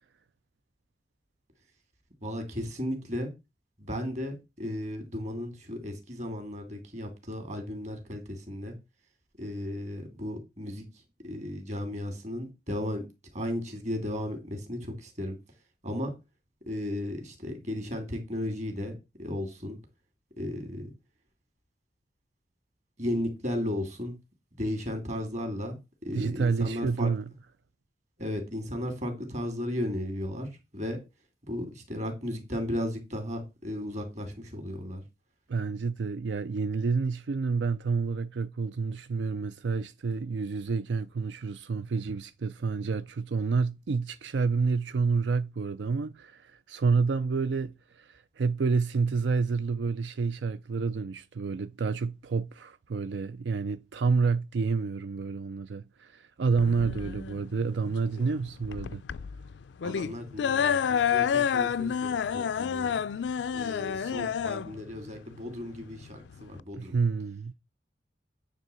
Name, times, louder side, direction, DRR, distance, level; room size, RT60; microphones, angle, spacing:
voice 1, 2.2-3.3 3.8-8.8 9.4-10.9 11.2-13.0 13.3-15.4 15.8-16.1 16.7-18.9 19.2-19.8 20.4-20.9 23.0-24.2 24.6-27.1 28.2-31.0 31.5-35.0 59.8-63.0 63.5-67.0, left 1 dB, 45° right, 2.5 m, -35 dB
voice 2, 26.1-27.2 35.5-59.0 66.8-67.5, right 4 dB, 90° right, 0.5 m, -29 dB
sound 1, 56.6-66.6, left 7 dB, 90° left, 0.4 m, -29 dB
9.2 x 3.6 x 6.9 m
head